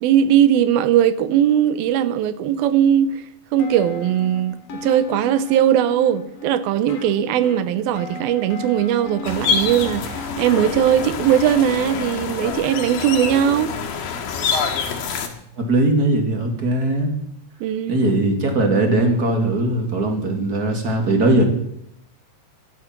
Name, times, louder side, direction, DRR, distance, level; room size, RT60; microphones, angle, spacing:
voice 1, 0.0-3.2 3.5-13.7 17.6-18.0, right 10 dB, 85° right, 2.7 m, -19 dB
sound 1, 3.6-12.5, left 4 dB, 50° left, 2.6 m, -36 dB
sound 2, 9.2-15.3, left 6 dB, 90° left, 3.6 m, -26 dB
voice 2, 15.6-17.1 17.9-21.4, right 2 dB, 30° right, 2.6 m, -19 dB
16.5 x 12.5 x 6.0 m
omnidirectional pair, 4.1 m